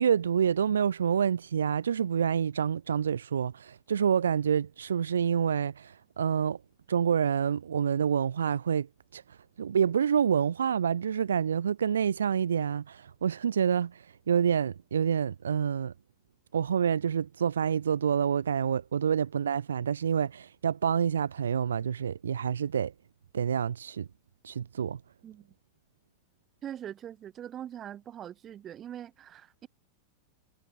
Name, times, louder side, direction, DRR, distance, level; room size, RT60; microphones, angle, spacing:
voice 1, 0.0-6.6 6.9-8.9 9.1-15.9 16.5-22.9 23.3-24.1 24.4-25.0, right 8 dB, 70° right, 0.9 m, -27 dB
voice 2, 26.6-29.7, right 10 dB, 30° right, 4.1 m, -42 dB
figure-of-eight pair, 90°, 0 cm